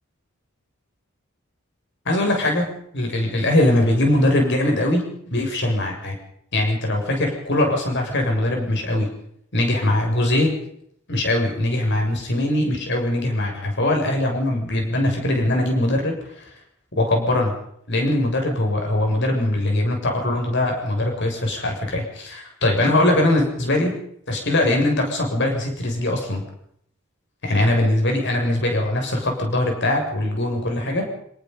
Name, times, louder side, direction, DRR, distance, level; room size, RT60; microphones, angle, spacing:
voice 1, 2.1-2.7 2.9-5.0 5.3-6.2 6.5-9.1 9.5-10.5 11.1-16.5 17.0-17.5 17.9-23.9 24.3-26.4 27.4-31.1, left 1 dB, 55° left, 2 dB, 7.1 m, -21 dB
29.5 x 19.0 x 5.6 m, 0.70 s
head